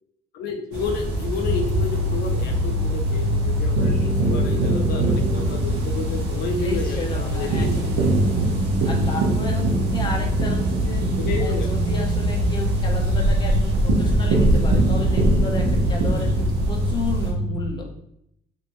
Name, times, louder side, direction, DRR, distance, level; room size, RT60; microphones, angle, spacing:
voice 1, 0.3-7.9 11.2-11.7, left 4 dB, 75° left, 3 dB, 0.5 m, -31 dB
sound 1, 0.7-17.3, right 2 dB, 85° right, 0.8 m, -23 dB
sound 2, 1.4-17.7, left 1 dB, 40° right, 1.1 m, -27 dB
voice 2, 6.5-8.3 8.8-11.0 11.4-17.9, left 2 dB, 25° left, 0 dB, 0.7 m, -33 dB
3.0 x 2.6 x 3.0 m, 0.73 s
cardioid pair, 110°, 17 cm